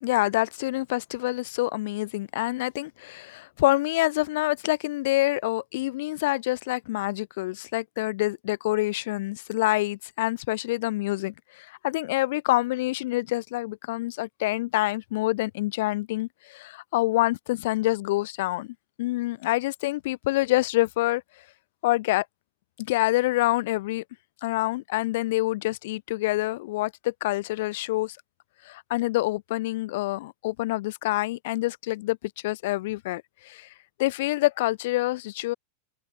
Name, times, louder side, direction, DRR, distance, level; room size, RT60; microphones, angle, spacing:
voice 1, 0.0-21.2 21.8-22.3 22.8-24.0 24.4-28.2 28.6-32.2 32.4-33.7 34.0-35.5, left 18 dB, 50° left, 1.0 m, -26 dB
figure-of-eight pair, 90°, 0 cm